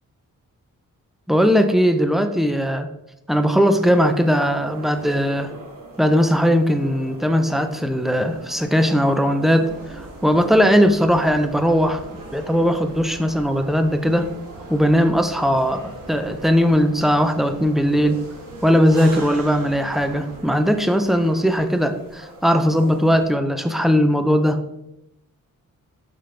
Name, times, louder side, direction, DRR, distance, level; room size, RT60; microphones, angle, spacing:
voice 1, 1.3-2.9 3.3-5.5 6.0-12.0 12.3-14.3 14.7-18.2 18.6-24.6, equal, ahead, 8 dB, 0.5 m, -19 dB
sound 1, 3.7-23.3, right 2 dB, 80° right, 1.4 m, -40 dB
sound 2, 9.6-20.4, right 1 dB, 45° right, 2.0 m, -44 dB
7.5 x 5.4 x 3.3 m, 0.86 s
wide cardioid pair, 130°, 33 cm